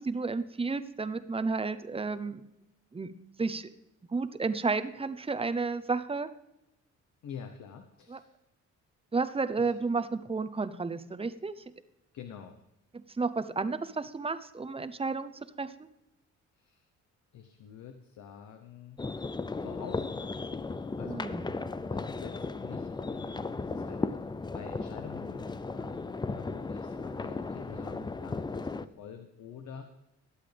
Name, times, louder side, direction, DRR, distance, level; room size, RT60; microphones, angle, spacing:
voice 1, 0.0-2.4 2.9-3.1 3.4-3.7 4.1-6.3 8.1-8.2 9.1-11.5 12.9-15.3 15.6-15.7 21.0-21.5, right 4 dB, 20° right, 11 dB, 0.8 m, -32 dB
voice 2, 7.2-8.3 9.6-9.7 12.1-12.6 16.6-16.8 17.3-19.0 19.6-20.6 21.0-21.3 21.9-24.2 24.5-29.9, left 7 dB, 70° left, 6 dB, 1.0 m, -47 dB
sound 1, 19.0-28.8, left 3 dB, 15° left, 0.5 m, -36 dB
21.0 x 8.2 x 3.4 m, 0.88 s
cardioid pair, 90°, 30 cm